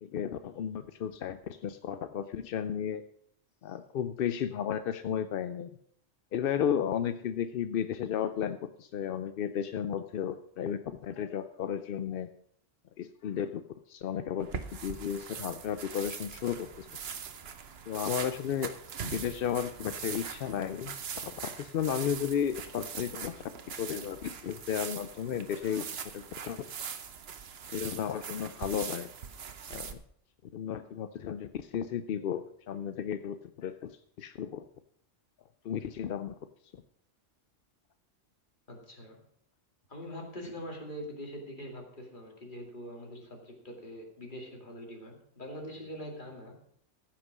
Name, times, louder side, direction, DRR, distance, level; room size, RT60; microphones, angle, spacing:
voice 1, 0.0-3.0 3.6-5.7 6.3-12.3 13.0-13.6 13.9-16.9 17.9-18.7 19.0-20.9 21.2-21.3 21.6-23.3 23.7-26.6 27.7-29.1 29.7-30.0 30.5-33.7 34.2-34.6 35.6-36.3, left 8 dB, 60° left, 10 dB, 0.7 m, -33 dB
sound 1, 14.4-29.9, right 7 dB, 60° right, 1.1 m, -42 dB
voice 2, 38.7-39.2 39.9-46.5, equal, 40° left, 1 dB, 2.6 m, -43 dB
15.0 x 6.0 x 6.1 m, 0.66 s
omnidirectional pair, 1.3 m